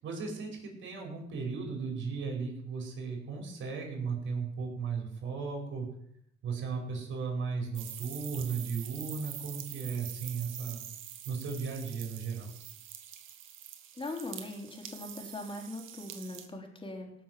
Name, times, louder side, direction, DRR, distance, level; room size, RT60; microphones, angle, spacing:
voice 1, 0.0-5.9 6.4-10.8 11.3-12.5, right 5 dB, 70° right, 1 dB, 5.3 m, -36 dB
sound 1, 7.7-16.5, right 10 dB, 90° right, 1.7 m, -45 dB
voice 2, 14.0-17.1, left 2 dB, 25° left, 1 dB, 3.7 m, -40 dB
17.5 x 6.8 x 7.6 m, 0.73 s
cardioid pair, 90°, 20 cm